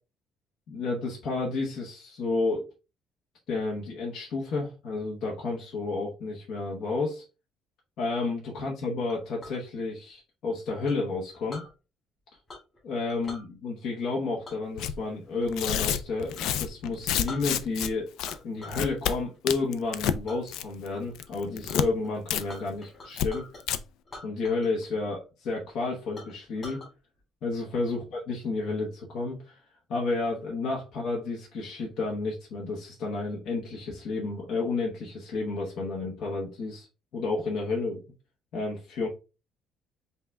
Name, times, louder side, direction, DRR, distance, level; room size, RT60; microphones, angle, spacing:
voice 1, 0.7-2.7 3.5-7.2 8.0-11.6 12.8-18.1 18.4-23.4 24.2-26.8 27.4-29.6 29.9-36.9 37.1-38.0 38.5-39.1, left 3 dB, 55° left, -2 dB, 1.0 m, -31 dB
Chink clink, 9.1-9.6 10.9-11.7 12.5-12.8 13.1-13.5 14.4-16.0 16.3-16.5 16.9-17.0 17.3-17.9 18.2-18.9 19.3-19.6 20.3-20.4 20.9-21.3 21.7-21.8 22.0-23.6 24.0-24.9 25.1-25.2 25.7-25.8 26.2-26.9, left 2 dB, 25° left, 2.2 m, -46 dB
Tearing, 14.8-15.0 15.5-17.9 18.2-18.4 18.7-19.1 19.5-20.2 20.5-20.9 21.2-21.9 22.3-22.4 22.7-22.8 23.2-23.3 23.6-23.8, left 9 dB, 85° left, 0.4 m, -29 dB
5.5 x 2.3 x 3.4 m, 0.31 s
cardioid pair, 175°, 0 cm